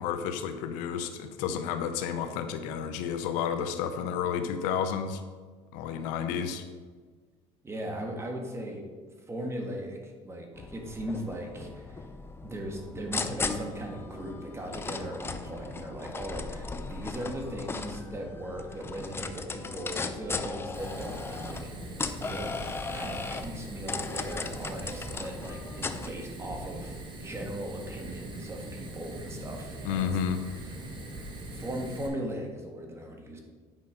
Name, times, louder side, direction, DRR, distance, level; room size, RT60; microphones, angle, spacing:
voice 1, 0.0-5.2 5.7-6.7 29.8-30.4, left 8 dB, 85° left, 9 dB, 0.8 m, -31 dB
voice 2, 7.6-8.8 9.3-12.0 12.4-21.7 22.2-22.5 22.9-30.1 31.5-33.4, right 1 dB, 20° right, 2 dB, 1.6 m, -38 dB
sound 1, 10.5-26.1, left 4 dB, 20° left, 0.6 m, -37 dB
Fire, 20.7-32.1, right 1 dB, 35° right, 1.7 m, -42 dB
9.3 x 5.3 x 5.1 m, 1.5 s
cardioid pair, 115°, 13 cm